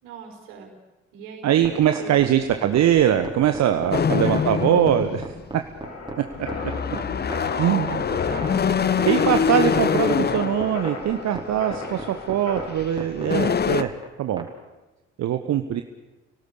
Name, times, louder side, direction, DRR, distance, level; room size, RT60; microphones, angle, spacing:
voice 1, 0.0-0.7 1.1-1.7 1.9-2.3 4.0-4.5 7.6-8.8, right 5 dB, 65° right, 2 dB, 5.0 m, -40 dB
voice 2, 1.4-5.3 7.6-8.0 9.1-14.5 15.2-15.8, right 10 dB, 45° right, 8 dB, 1.3 m, -22 dB
sound 1, 1.6-14.5, right 2 dB, 10° right, 4.9 m, -35 dB
sound 2, 3.9-5.6 6.4-11.2 11.8-12.1 12.8-12.9 13.1-13.8, left 7 dB, 25° left, 1.0 m, -24 dB
sound 3, 5.8-12.7, left 3 dB, 45° left, 6.3 m, -36 dB
29.0 x 18.0 x 8.4 m, 1.1 s
figure-of-eight pair, 50°, 37 cm